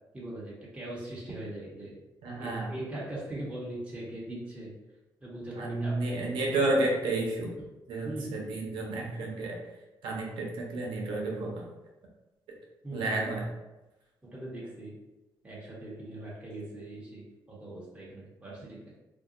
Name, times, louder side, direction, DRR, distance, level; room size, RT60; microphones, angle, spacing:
voice 1, 0.1-2.0 2.4-4.7 5.2-6.3 8.0-8.4 12.8-13.2 14.2-14.9 15.4-18.8, right 1 dB, 15° right, -7 dB, 1.1 m, -40 dB
voice 2, 2.2-2.7 5.5-7.5 7.9-9.6 10.0-11.7 12.9-13.4, right 2 dB, 90° right, -1 dB, 0.8 m, -31 dB
2.7 x 2.2 x 3.8 m, 1.0 s
cardioid pair, 80°, 8 cm